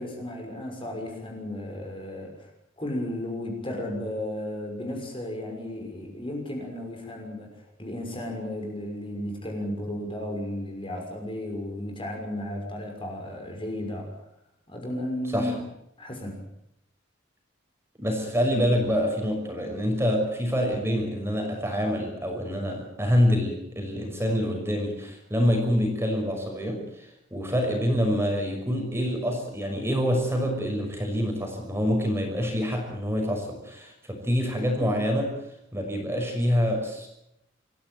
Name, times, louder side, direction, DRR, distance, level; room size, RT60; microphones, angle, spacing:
voice 1, 0.0-2.5 2.8-7.5 7.8-14.1 14.7-15.6 16.0-16.4, left 1 dB, 25° left, 2 dB, 6.1 m, -34 dB
voice 2, 18.0-35.3 35.7-37.1, equal, 15° right, 2 dB, 6.0 m, -26 dB
26.0 x 16.0 x 9.2 m, 0.81 s
head